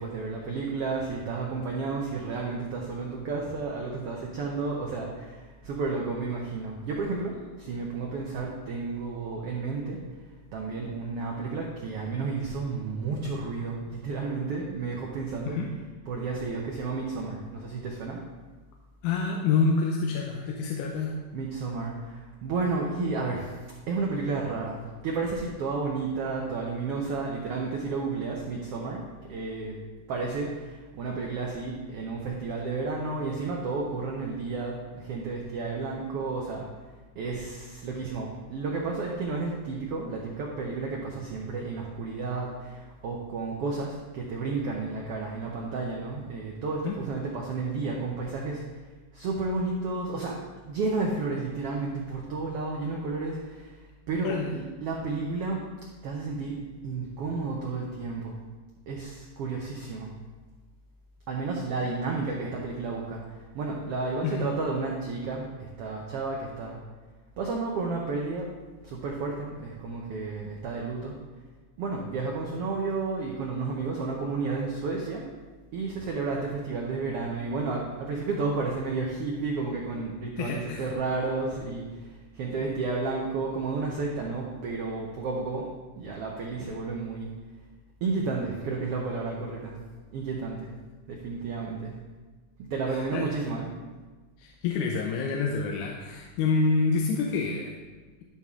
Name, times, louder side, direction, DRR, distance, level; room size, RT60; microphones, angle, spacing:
voice 1, 0.0-10.0 10.5-15.6 16.1-18.2 21.3-23.6 23.9-29.0 29.3-29.8 30.1-36.6 37.1-48.6 49.1-50.4 50.7-53.8 54.1-55.6 56.0-58.4 58.9-60.1 61.3-66.8 67.4-68.5 68.8-71.2 71.8-75.2 75.7-85.7 86.0-87.3 88.0-89.7 90.1-90.7 91.1-92.0 92.7-93.7, right 3 dB, 85° right, -1 dB, 1.3 m, -32 dB
voice 2, 19.0-21.1 46.9-47.0 54.2-54.5 64.2-64.5 80.4-80.9 92.9-93.3 94.4-97.8, left 4 dB, 80° left, 0 dB, 2.1 m, -27 dB
11.0 x 5.6 x 3.6 m, 1.3 s
omnidirectional pair, 3.8 m